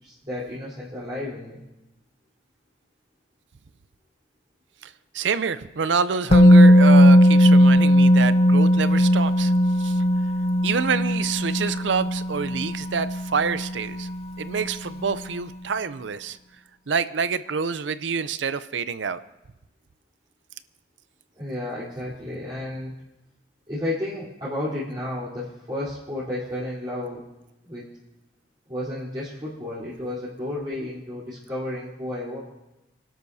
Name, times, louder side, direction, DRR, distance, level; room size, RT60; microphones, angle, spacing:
voice 1, 0.0-1.6 21.4-22.9 23.7-27.2 27.6-27.9 28.7-32.4, left 1 dB, 25° right, -10 dB, 3.6 m, -32 dB
voice 2, 4.8-9.5 9.8-10.0 10.6-14.1 14.4-16.4 16.9-19.2, right 5 dB, 85° right, 14 dB, 0.6 m, -27 dB
Musical instrument, 6.3-14.2 14.5-14.7, equal, 35° left, 0.5 m, -17 dB
26.0 x 12.0 x 2.8 m, 0.97 s
head